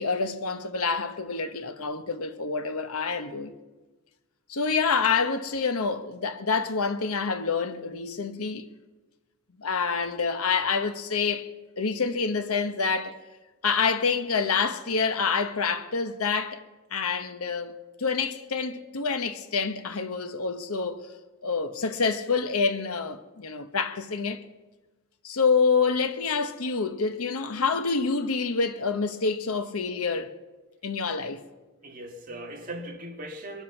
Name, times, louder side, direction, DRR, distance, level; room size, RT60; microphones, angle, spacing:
voice 1, 0.0-3.5 4.5-8.7 9.6-11.5 11.8-13.1 13.6-16.6 16.9-17.7 18.0-21.0 21.4-24.4 25.2-30.3 30.8-31.4, left 5 dB, 85° left, 1.0 m, -27 dB
voice 2, 31.8-33.6, right 1 dB, 40° right, 2.1 m, -39 dB
22.5 x 8.2 x 6.0 m
head